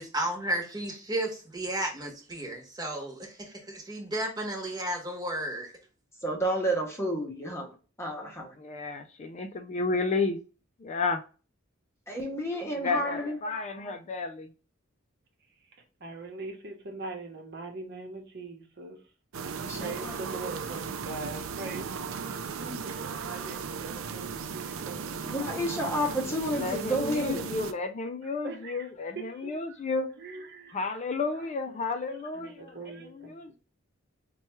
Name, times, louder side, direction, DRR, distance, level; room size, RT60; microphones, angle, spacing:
voice 1, 0.0-5.7, right 1 dB, 20° right, 1.0 m, -33 dB
voice 2, 6.2-8.5 12.1-13.4 19.6-20.1 25.2-27.5, equal, 15° left, 0.7 m, -31 dB
voice 3, 8.6-10.4 10.8-11.2 12.5-14.5 26.5-30.1 30.7-33.6, left 3 dB, 35° left, 0.4 m, -32 dB
voice 4, 15.6-19.0 19.4-22.3 22.6-26.3 28.2-29.8 30.2-30.8 31.3-31.8 32.3-33.4, right 3 dB, 55° right, 0.9 m, -43 dB
sound 1, 19.3-27.7, right 5 dB, 75° right, 0.4 m, -36 dB
4.4 x 2.2 x 3.0 m
head